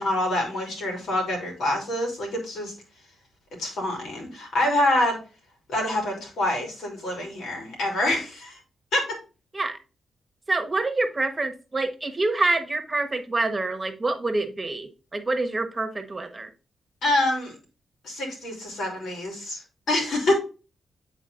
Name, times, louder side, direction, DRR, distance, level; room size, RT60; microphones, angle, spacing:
voice 1, 0.0-2.7 3.6-5.2 5.7-8.6 8.9-9.1 17.0-17.5 18.0-19.6 19.9-20.3, left 1 dB, 80° left, 1 dB, 2.8 m, -26 dB
voice 2, 10.5-16.5, right 2 dB, 25° right, 7 dB, 1.1 m, -26 dB
9.8 x 4.1 x 2.5 m, 0.34 s
cardioid pair, 70°, 0 cm